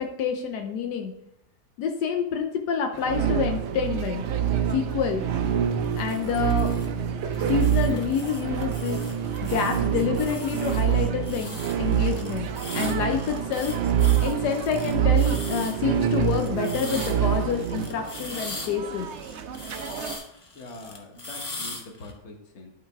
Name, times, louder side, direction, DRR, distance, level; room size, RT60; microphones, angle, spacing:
voice 1, 0.2-1.1 1.8-4.2 4.7-5.2 5.9-6.7 7.3-9.0 9.5-12.5 12.7-13.7 14.2-19.1, left 6 dB, 80° left, 4 dB, 1.2 m, -27 dB
sound 1, 2.9-20.2, right 6 dB, 65° right, 0.7 m, -38 dB
sound 2, 3.0-17.9, right 9 dB, 85° right, 1.2 m, -26 dB
sound 3, 5.8-6.9 7.3-22.1, left 2 dB, 25° left, 0.8 m, -41 dB
voice 2, 20.5-22.7, left 1 dB, 45° left, 2 dB, 1.3 m, -43 dB
12.0 x 4.0 x 3.5 m, 0.82 s
omnidirectional pair, 1.8 m